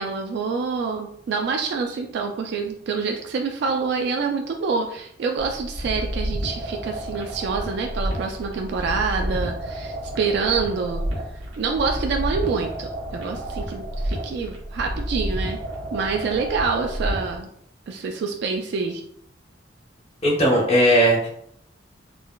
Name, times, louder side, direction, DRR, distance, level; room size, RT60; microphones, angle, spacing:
voice 1, 0.0-11.1 11.6-15.6 15.9-17.5 17.9-19.0, right 4 dB, 65° right, 3 dB, 0.3 m, -26 dB
sound 1, 5.4-17.4, equal, 80° right, 0.8 m, -30 dB
voice 2, 20.2-21.3, equal, 35° left, -3 dB, 0.7 m, -17 dB
3.8 x 2.1 x 2.2 m, 0.70 s
head